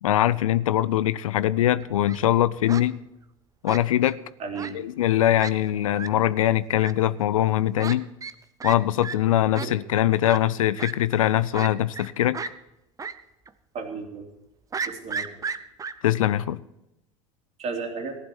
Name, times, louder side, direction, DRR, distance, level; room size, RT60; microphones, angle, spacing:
voice 1, 0.0-3.0 3.6-4.2 4.7-8.0 8.6-12.4 16.0-16.6, left 12 dB, 80° left, 0.5 m, -22 dB
Fowl, 1.8-2.2 2.7-2.8 3.7-4.1 4.5-4.7 5.0-5.1 5.4-5.5 5.9-6.1 6.8-6.9 7.8-7.9 8.2-8.3 8.6-8.8 9.0-9.1 9.5-9.7 10.2-10.4 10.8-10.9 11.5-12.1 12.3-12.5 13.0-13.1 13.5-13.6 14.7-15.9, right 5 dB, 20° right, 0.7 m, -33 dB
voice 2, 4.4-4.8 9.6-9.7 13.7-14.3 14.8-15.3 17.6-18.2, right 4 dB, 40° right, 2.8 m, -33 dB
15.0 x 11.5 x 4.5 m
hypercardioid pair, 80°, 17 cm